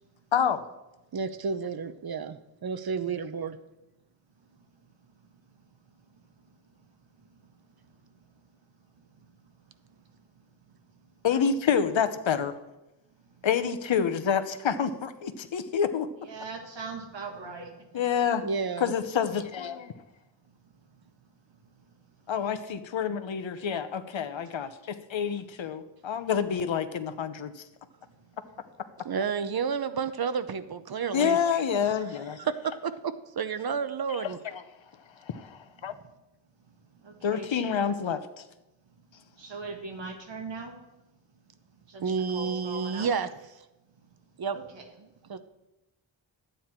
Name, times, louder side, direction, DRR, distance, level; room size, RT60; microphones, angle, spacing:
voice 1, 1.1-3.6 18.4-18.9 29.0-31.4 31.8-31.9 32.4-32.5 32.8-34.4 42.0-43.3 44.4-44.6 45.0-45.4, right 6 dB, 50° right, 11 dB, 0.8 m, -31 dB
voice 2, 11.2-12.5 13.4-16.1 17.9-18.4 18.8-19.9 22.3-27.6 31.1-32.4 34.1-34.3 35.3-35.9 37.2-38.2, left 7 dB, 75° left, 11 dB, 0.9 m, -28 dB
voice 3, 16.2-18.0 37.0-37.9 39.4-40.8 41.9-43.1 44.5-44.9, right 4 dB, 70° right, 2 dB, 2.0 m, -40 dB
12.5 x 9.1 x 4.5 m, 0.97 s
wide cardioid pair, 125°, 46 cm